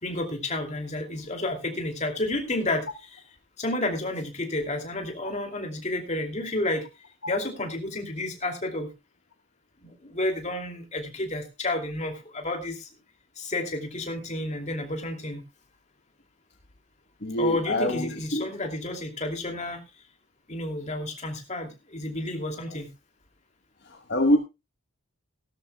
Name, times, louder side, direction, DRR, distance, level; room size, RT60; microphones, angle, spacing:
voice 1, 0.0-2.9 3.6-6.8 7.3-8.9 9.8-12.9 13.4-15.4 17.4-19.8 20.5-22.9, left 2 dB, 30° left, 4 dB, 2.7 m, -31 dB
voice 2, 17.2-18.5 23.9-24.4, left 1 dB, 50° left, 5 dB, 1.3 m, -25 dB
17.0 x 12.5 x 2.3 m, 0.26 s
head